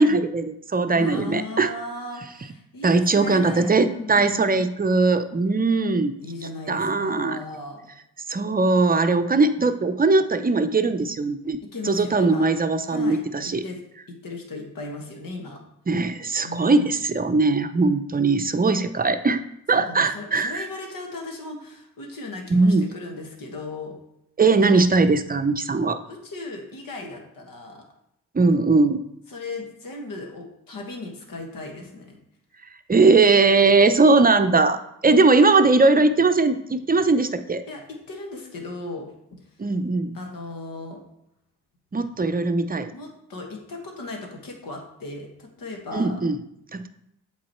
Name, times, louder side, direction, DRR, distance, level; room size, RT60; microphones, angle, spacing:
voice 1, 0.0-1.7 2.8-6.1 6.7-7.4 8.3-11.6 11.9-13.6 15.9-19.4 19.7-20.7 22.5-22.9 24.4-26.0 28.3-29.0 32.9-34.8 35.0-37.6 39.6-40.2 41.9-42.9 45.9-46.4 46.7-46.9, right 3 dB, 25° right, 9 dB, 0.6 m, -20 dB
voice 2, 0.9-4.7 6.2-7.9 11.7-12.5 12.9-13.2 13.6-13.8 14.1-15.6 16.4-16.9 19.7-24.0 26.0-27.8 29.3-32.2 35.1-35.2 37.7-39.1 39.4-39.5 40.1-41.0 42.9-46.2, left 2 dB, 70° left, 2 dB, 1.5 m, -36 dB
7.6 x 4.0 x 4.4 m, 0.79 s
supercardioid pair, 45°, 35 cm